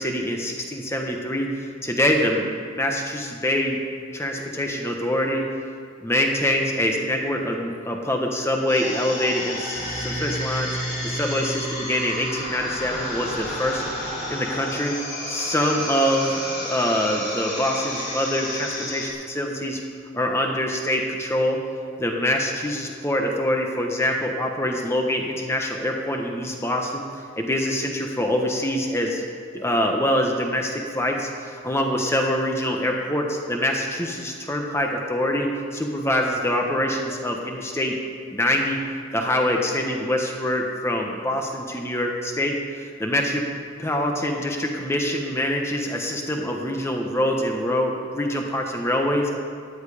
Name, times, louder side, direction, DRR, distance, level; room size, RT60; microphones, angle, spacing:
voice 1, 0.0-3.8 4.1-5.4 6.0-15.0 15.3-19.8 20.1-21.6 22.0-27.0 27.4-29.2 29.5-38.0 38.3-38.8 39.1-43.5 43.8-49.3, left 1 dB, 10° left, 2 dB, 1.2 m, -25 dB
sound 1, 8.7-19.1, left 1 dB, 35° left, 2.9 m, -31 dB
sound 2, 9.7-15.0, right 2 dB, 25° right, 1.6 m, -36 dB
15.5 x 11.0 x 5.1 m, 2.2 s
head